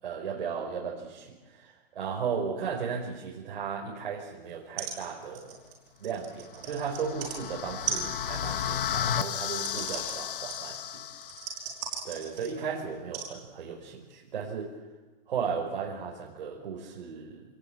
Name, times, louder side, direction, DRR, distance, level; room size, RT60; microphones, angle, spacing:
voice 1, 0.0-5.5 6.0-11.0 12.0-14.7 15.3-17.4, right 6 dB, 65° right, -2 dB, 4.9 m, -35 dB
sound 1, 4.5-4.6 4.8-5.0 5.2-7.4 7.9-12.6 13.1-13.3 14.1-14.2, right 7 dB, 25° right, 5.3 m, -38 dB
sound 2, 6.6-11.7, left 9 dB, 65° left, 1.3 m, -33 dB
27.5 x 18.5 x 8.9 m, 1.2 s
hypercardioid pair, 180°, 29 cm